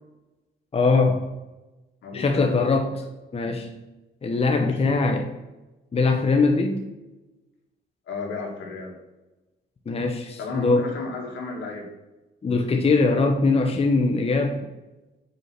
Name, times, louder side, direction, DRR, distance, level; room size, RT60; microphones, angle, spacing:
voice 1, 0.7-1.2 2.1-2.9 3.3-3.7 4.2-5.3 5.9-6.8 9.9-11.0 12.4-14.6, left 3 dB, 30° left, 4 dB, 0.8 m, -21 dB
voice 2, 2.0-2.7 4.5-4.8 8.1-9.0 10.4-11.9, left 3 dB, 75° left, 0 dB, 2.1 m, -34 dB
5.3 x 4.8 x 5.9 m, 1.1 s
cardioid pair, 90°, 20 cm